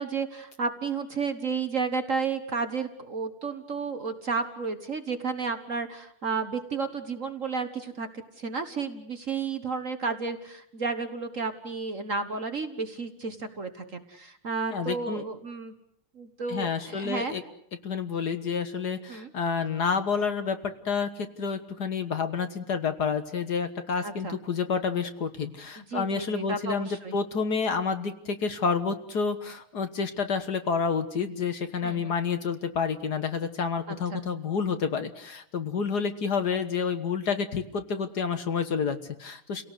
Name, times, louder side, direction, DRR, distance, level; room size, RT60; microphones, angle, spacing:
voice 1, 0.0-8.1 8.4-15.7 16.2-17.3 19.1-19.3 24.0-24.4 25.8-27.2 31.8-32.1 33.9-34.2, right 4 dB, 40° right, 8 dB, 1.6 m, -32 dB
voice 2, 14.7-15.2 16.5-17.4 17.8-39.6, left 5 dB, 50° left, 9 dB, 1.8 m, -29 dB
30.0 x 18.0 x 8.2 m, 0.73 s
omnidirectional pair, 2.3 m